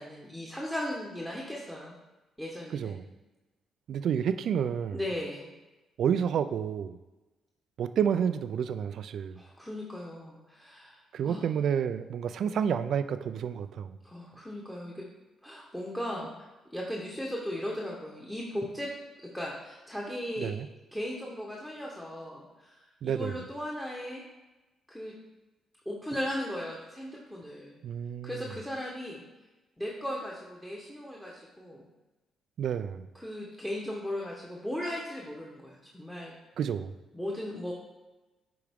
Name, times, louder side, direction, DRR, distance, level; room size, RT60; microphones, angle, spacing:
voice 1, 0.0-1.9 2.4-2.9 4.9-5.5 9.4-11.4 14.0-15.0 15.4-18.9 19.2-20.5 20.9-24.2 24.9-25.1 25.8-27.8 28.2-29.2 29.8-31.9 33.1-36.3 37.1-37.7, left 1 dB, 5° left, -3 dB, 1.0 m, -37 dB
voice 2, 2.7-3.1 3.9-5.0 6.0-7.0 7.8-9.4 11.1-14.0 20.4-20.7 23.0-23.4 27.8-28.4 32.6-33.1 36.6-36.9, right 8 dB, 65° right, 11 dB, 0.3 m, -30 dB
9.7 x 3.5 x 3.5 m, 1.1 s
cardioid pair, 90°, 0 cm